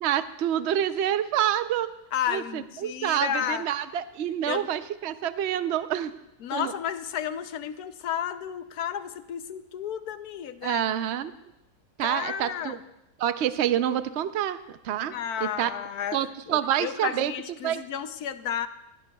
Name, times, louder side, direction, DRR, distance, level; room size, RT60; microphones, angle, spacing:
voice 1, 0.0-1.9 2.3-6.1 6.5-6.7 10.6-11.3 12.0-12.8 13.2-14.6 14.8-15.1 15.4-15.7 16.1-17.3 17.6-17.8, right 11 dB, 60° right, 11 dB, 0.7 m, -27 dB
voice 2, 2.1-3.6 4.5-4.7 6.4-10.9 12.0-12.8 15.1-16.2 16.5-18.7, left 9 dB, 70° left, 11 dB, 1.2 m, -32 dB
24.5 x 17.5 x 2.3 m, 0.86 s
omnidirectional pair, 1.7 m